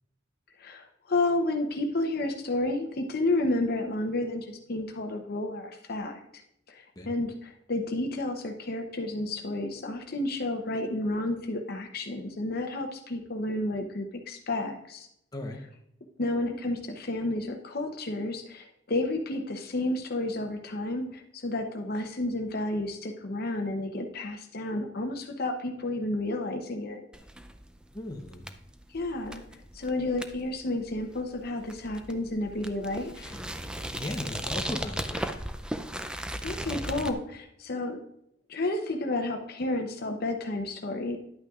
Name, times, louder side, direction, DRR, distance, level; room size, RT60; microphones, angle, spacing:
voice 1, 0.6-6.2 6.7-15.1 16.2-27.1 28.9-29.4 29.7-33.4 36.4-38.0 38.5-41.2, left 2 dB, 55° left, 4 dB, 0.7 m, -31 dB
sound 1, 27.1-37.1, right 1 dB, 5° right, 0.4 m, -37 dB
voice 2, 27.9-28.5 33.3-33.7 33.9-35.3, left 1 dB, 20° left, 2 dB, 0.8 m, -37 dB
10.5 x 8.7 x 2.4 m, 0.77 s
head